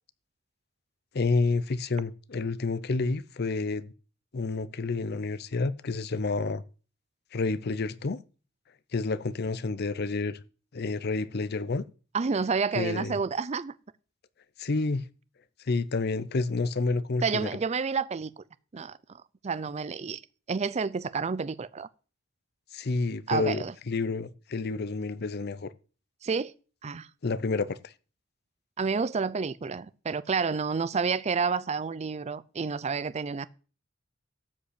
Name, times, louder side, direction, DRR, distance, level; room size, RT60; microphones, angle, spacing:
voice 1, 1.1-3.9 4.3-6.6 7.3-8.2 8.9-10.4 10.7-11.8 12.7-13.2 14.6-15.0 15.7-17.5 22.7-25.7 27.2-27.9, left 3 dB, 55° left, 0.6 m, -29 dB
voice 2, 12.1-13.7 17.2-18.4 18.7-20.2 20.5-21.9 23.3-23.7 26.2-26.5 26.8-27.1 28.8-33.5, right 5 dB, 35° right, 0.5 m, -30 dB
13.0 x 5.2 x 8.4 m
head